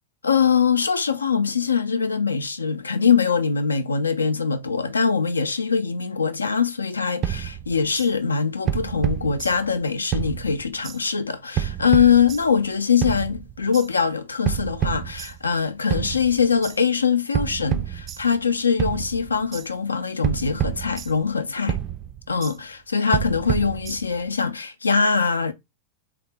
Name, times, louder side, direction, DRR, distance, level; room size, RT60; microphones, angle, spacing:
voice 1, 0.2-21.8 22.3-25.5, left 6 dB, 75° left, 0.4 m, -22 dB
sound 1, 7.2-8.1 8.7-9.8 10.1-11.0 11.6-12.7 13.0-13.9 14.5-15.6 15.9-16.8 17.3-18.5 18.8-19.7 20.2-21.4 21.7-22.6 23.1-24.3, right 10 dB, 30° right, 0.3 m, -29 dB
3.4 x 2.7 x 3.3 m
figure-of-eight pair, 90°, 0 cm